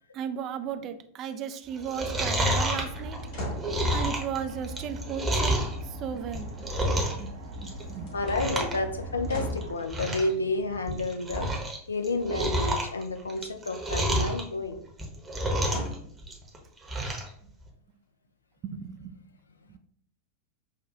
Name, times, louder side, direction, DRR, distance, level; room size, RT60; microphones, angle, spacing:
voice 1, 0.1-3.2 3.9-5.5 6.0-6.5 7.0-8.1 18.6-19.2, right 8 dB, 35° right, 10 dB, 0.3 m, -35 dB
Chewing mastication, 1.8-5.7 6.2-7.3 7.5-7.9 8.2-8.8 9.0-9.1 9.6-9.7 9.9-10.3 10.7-11.8 12.0-14.4 14.9-15.9 16.2-17.3 17.7-17.8, right 1 dB, 15° right, 0.9 m, -29 dB
sound 1, 2.7-9.8, equal, 60° right, 1.0 m, -40 dB
sound 2, 3.3-3.8 6.3-7.0 7.9-8.4 9.3-9.7 13.3-13.8 15.6-16.2 16.9-17.0, equal, 55° left, 1.6 m, -38 dB
voice 2, 8.1-11.5 11.9-14.8, left 2 dB, 75° left, 6 dB, 0.5 m, -30 dB
6.4 x 2.3 x 2.4 m, 0.64 s
figure-of-eight pair, 90°, 0 cm